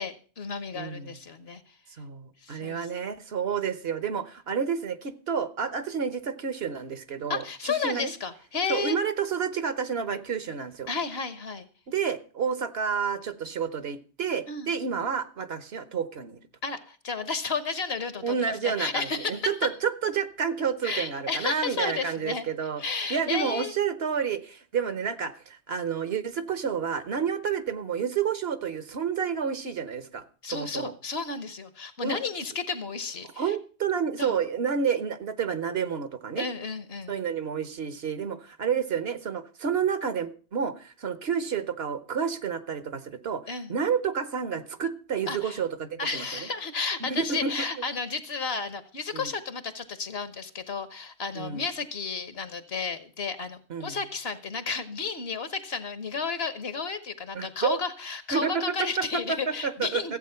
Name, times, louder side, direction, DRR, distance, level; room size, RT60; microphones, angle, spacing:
voice 1, 0.0-1.6 2.4-2.9 7.3-9.0 10.9-11.7 14.5-14.7 16.6-19.5 20.8-22.4 22.8-23.7 30.4-33.6 34.2-34.4 36.4-37.2 43.5-43.7 45.3-45.6 46.0-60.2, left 4 dB, 65° left, 1.4 m, -32 dB
voice 2, 0.7-1.2 2.0-8.1 8.7-10.9 11.9-16.4 18.2-22.8 23.1-30.2 30.5-30.9 32.0-32.2 33.4-36.4 37.1-43.4 43.7-46.2 47.0-47.5 49.1-49.3 51.4-51.6 53.7-54.0 57.3-57.8 58.3-60.2, right 7 dB, 70° right, 1.3 m, -30 dB
14.5 x 8.3 x 5.7 m
omnidirectional pair, 1.1 m